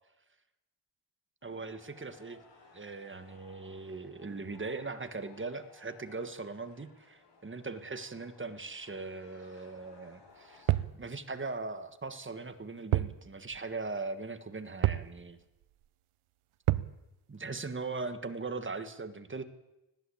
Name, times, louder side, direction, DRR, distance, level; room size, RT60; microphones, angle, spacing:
sound 1, 1.4-10.8, left 3 dB, 60° left, 7.0 m, -60 dB
voice 1, 1.4-2.4 2.7-15.4 17.3-19.4, right 3 dB, 25° right, 9 dB, 1.6 m, -40 dB
sound 2, 10.7-11.0 12.9-13.2 13.5-13.6 14.8-15.1 16.7-17.0, right 15 dB, 90° right, 0.8 m, -28 dB
20.0 x 16.0 x 8.6 m, 0.98 s
wide cardioid pair, 120°, 48 cm